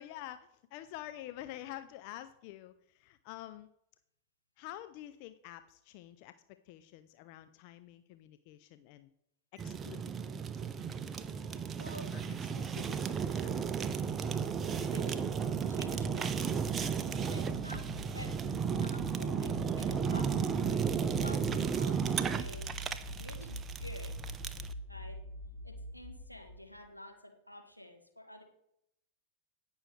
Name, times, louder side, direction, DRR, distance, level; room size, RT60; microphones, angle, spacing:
voice 1, 0.0-3.7 4.6-6.3 6.7-9.1 9.5-10.1 12.1-12.2 12.5-13.5 17.3-17.6, left 13 dB, 45° left, 11 dB, 0.5 m, -48 dB
Fire, 9.6-24.7, right 6 dB, 25° right, 0.6 m, -34 dB
voice 2, 14.8-15.2 15.7-16.7 17.2-18.3 18.6-24.2 24.9-25.2 25.6-28.4, left 1 dB, 90° left, 3 dB, 1.5 m, -50 dB
sound 1, 15.5-26.9, equal, 15° left, 3.6 m, -46 dB
17.5 x 6.3 x 3.3 m, 0.77 s
figure-of-eight pair, 90°, 0 cm